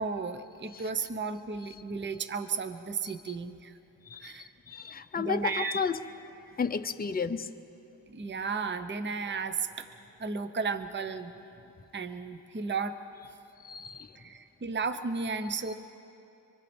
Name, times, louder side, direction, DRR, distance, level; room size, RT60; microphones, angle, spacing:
voice 1, 0.0-3.7 4.2-4.5 5.2-5.8 8.1-9.9 10.2-11.3 11.9-13.0 14.2-15.7, right 5 dB, 25° right, 10 dB, 0.8 m, -34 dB
voice 2, 3.0-3.4 4.1-4.3 4.7-6.0 6.6-7.5 13.6-14.2, left 5 dB, 20° left, 8 dB, 0.7 m, -32 dB
25.0 x 24.0 x 4.4 m, 2.8 s
cardioid pair, 80°, 44 cm